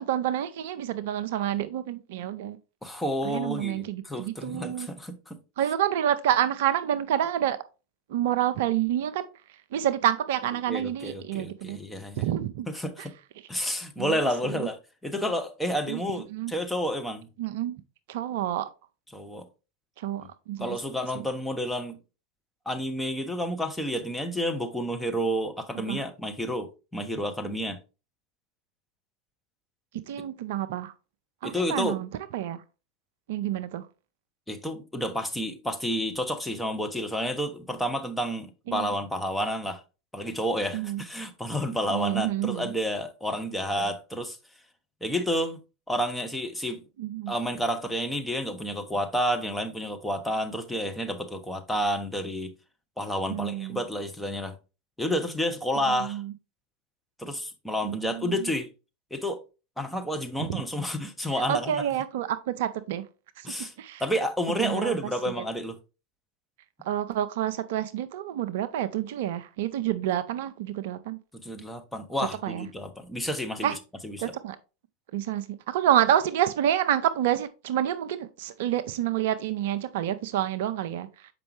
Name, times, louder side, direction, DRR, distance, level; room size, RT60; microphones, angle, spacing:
voice 1, 0.0-2.6 3.2-4.9 5.6-7.6 8.1-9.3 9.7-11.8 12.2-12.7 13.0-13.1 14.0-14.2 14.4-14.7 15.9-16.0 16.3-16.5 17.4-17.8 18.1-18.7 20.0-20.8 21.1-21.2 25.9-26.0 30.1-30.9 31.4-32.6 33.3-33.9 38.7-38.9 40.7-41.0 41.9-42.7 47.0-47.3 53.3-53.8 55.9-56.3 57.8-58.5 60.5-60.6 61.5-63.0 63.4-64.0 64.6-65.0 65.3-65.4 66.8-71.2 72.4-72.7 73.6-73.8 74.2-74.6 75.1-81.3, right 11 dB, 60° right, 0.5 m, -28 dB
voice 2, 2.8-5.4 10.7-12.2 12.7-13.1 13.5-17.3 19.1-19.5 20.2-20.3 20.6-22.0 22.7-27.8 31.4-32.0 34.5-39.8 40.1-44.4 45.0-45.6 45.9-46.8 47.3-52.5 53.0-54.5 55.0-56.2 57.2-58.7 59.1-59.4 59.8-61.9 63.4-63.7 64.0-65.8 71.4-73.8 74.0-74.3, equal, 5° left, 1.1 m, -30 dB
6.9 x 5.2 x 3.2 m
figure-of-eight pair, 85°, 0 cm